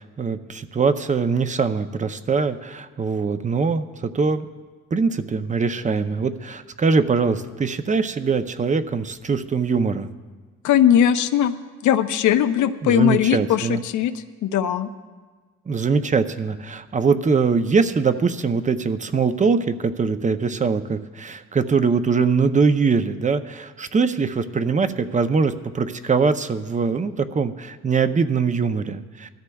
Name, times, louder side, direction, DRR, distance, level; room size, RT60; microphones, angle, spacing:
voice 1, 0.0-3.9 4.1-4.5 4.9-10.1 12.8-13.8 15.7-29.3, right 5 dB, 25° right, 11 dB, 0.6 m, -22 dB
voice 2, 10.6-11.5 11.8-14.1 14.4-14.9, left 10 dB, 75° left, 10 dB, 0.7 m, -19 dB
20.0 x 13.0 x 2.3 m, 1.4 s
cardioid pair, 90°, 30 cm